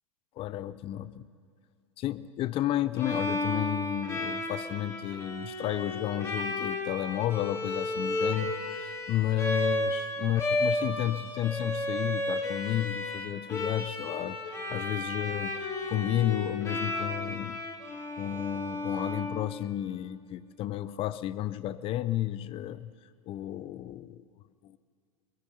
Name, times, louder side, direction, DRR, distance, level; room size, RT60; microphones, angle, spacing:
voice 1, 0.4-1.2 2.0-17.6 18.2-22.9 23.3-24.2 24.6-24.8, left 12 dB, 30° left, 16 dB, 0.5 m, -32 dB
Bowed string instrument, 3.0-19.9, left 2 dB, 15° left, 1.9 m, -33 dB
23.0 x 10.5 x 5.6 m, 2.3 s
figure-of-eight pair, 90°, 18 cm